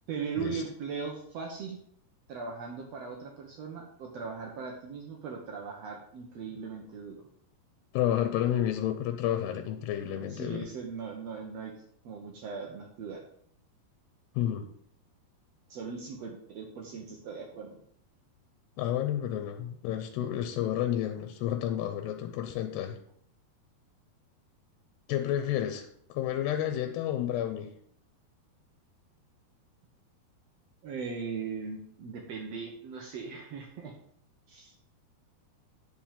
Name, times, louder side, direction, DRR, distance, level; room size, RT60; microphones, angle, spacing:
voice 1, 0.1-1.8 2.3-7.3 9.5-9.6 10.2-11.7 12.0-13.2 15.7-17.8 30.8-33.9 34.5-34.7, right 5 dB, 80° right, 1 dB, 1.4 m, -39 dB
voice 2, 7.9-10.7 14.3-14.7 18.8-23.0 25.1-27.7, left 11 dB, 85° left, 6 dB, 2.9 m, -30 dB
9.9 x 4.6 x 7.3 m, 0.64 s
omnidirectional pair, 4.7 m